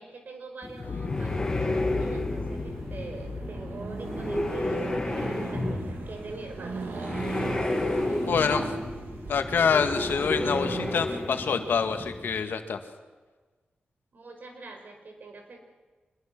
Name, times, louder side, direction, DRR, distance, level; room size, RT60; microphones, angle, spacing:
voice 1, 0.0-6.9 14.1-15.6, right 3 dB, 60° right, 4 dB, 5.2 m, -44 dB
sound 1, 0.6-12.4, left 1 dB, 15° left, 3.1 m, -32 dB
Explosion, 0.8-6.8 7.2-7.3, left 5 dB, 60° left, 1.3 m, -37 dB
Accelerating revving vroom, 2.3-11.0, right 4 dB, 85° right, 3.3 m, -39 dB
voice 2, 8.3-8.7 9.3-12.8, left 6 dB, 85° left, 7 dB, 1.9 m, -26 dB
25.5 x 21.5 x 6.1 m, 1.3 s
wide cardioid pair, 100°, 3 cm